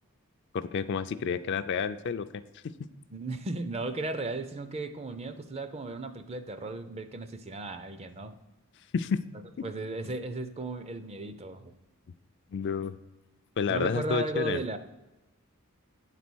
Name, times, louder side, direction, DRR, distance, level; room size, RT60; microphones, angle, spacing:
voice 1, 0.5-2.3 8.9-9.2 9.6-9.7 10.0-10.1 12.5-13.0 13.6-14.6, left 6 dB, 50° left, 11 dB, 0.3 m, -30 dB
voice 2, 3.1-8.4 9.6-11.8 13.7-14.8, right 2 dB, 25° right, 10 dB, 0.4 m, -35 dB
9.0 x 4.1 x 6.1 m, 1.1 s
head